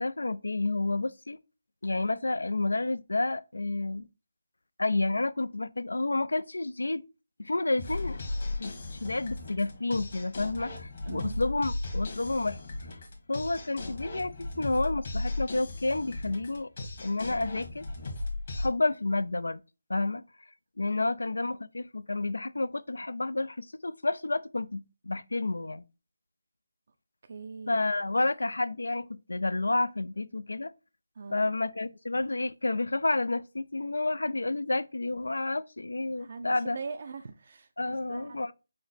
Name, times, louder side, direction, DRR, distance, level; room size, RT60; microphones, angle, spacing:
voice 1, 0.0-1.4 1.8-4.0 4.8-7.0 7.4-8.2 8.6-12.6 13.3-16.7 17.0-17.9 18.5-19.6 19.9-20.2 20.8-25.8 27.7-30.7 31.3-36.8 37.8-38.5, left 2 dB, 90° left, 0.3 m, -30 dB
sound 1, 7.8-18.7, left 2 dB, 45° left, 1.2 m, -36 dB
voice 2, 11.1-11.4 27.3-27.8 31.2-31.5 36.2-37.7 38.1-38.4, right 4 dB, 45° right, 0.4 m, -41 dB
4.9 x 2.0 x 4.1 m
figure-of-eight pair, 165°, 0 cm